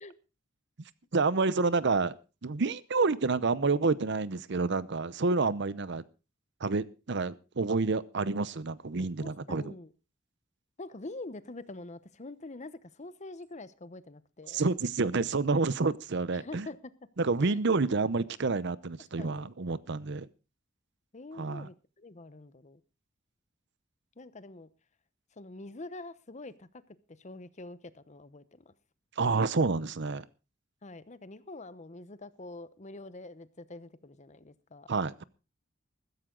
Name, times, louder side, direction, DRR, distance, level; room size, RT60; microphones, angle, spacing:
voice 1, 1.1-2.1 2.4-6.0 6.6-9.7 14.5-16.7 17.2-20.3 21.4-21.7 29.2-30.3 34.9-35.2, right 4 dB, 60° right, 18 dB, 0.7 m, -29 dB
voice 2, 9.2-9.9 10.8-14.6 16.3-16.9 17.4-17.6 19.2-19.5 21.1-22.8 24.2-24.7 25.4-26.7 27.2-28.7 30.8-34.9, left 2 dB, 35° left, 15 dB, 0.9 m, -45 dB
15.0 x 13.5 x 3.8 m, 0.31 s
head